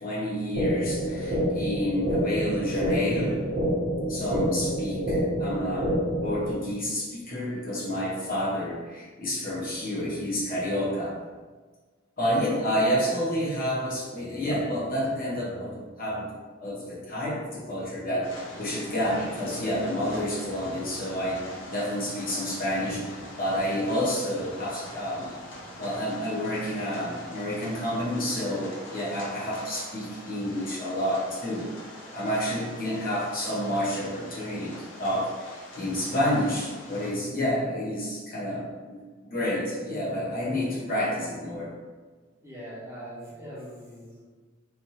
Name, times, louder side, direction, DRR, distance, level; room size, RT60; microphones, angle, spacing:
voice 1, 0.0-3.4 4.1-5.9 6.2-11.1 12.2-16.3 16.6-18.3 18.6-21.4 21.7-25.3 25.8-31.7 32.1-39.0 39.3-41.7, equal, 45° left, -7 dB, 1.1 m, -29 dB
sound 1, 0.6-6.6, equal, 70° right, 0.8 m, -27 dB
sound 2, 18.2-37.1, left 1 dB, 70° left, 0.8 m, -43 dB
voice 2, 39.9-40.9 42.4-44.2, equal, 15° right, -8 dB, 0.9 m, -42 dB
3.3 x 2.7 x 2.9 m, 1.3 s
head